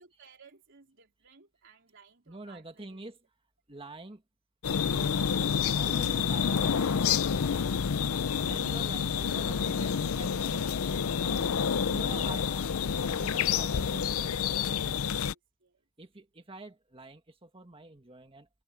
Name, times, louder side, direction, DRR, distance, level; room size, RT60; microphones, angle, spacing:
voice 1, 0.0-3.0 11.5-13.4 15.1-15.8, right 5 dB, 65° right, 3.6 m, -59 dB
voice 2, 2.3-3.2 3.7-4.2 4.9-5.1 5.4-7.7 8.4-10.7 11.2-11.5 11.9-12.5 13.0-14.4 16.0-18.5, right 2 dB, 25° right, 1.8 m, -46 dB
sound 1, 4.6-15.3, left 7 dB, 85° left, 0.5 m, -28 dB
head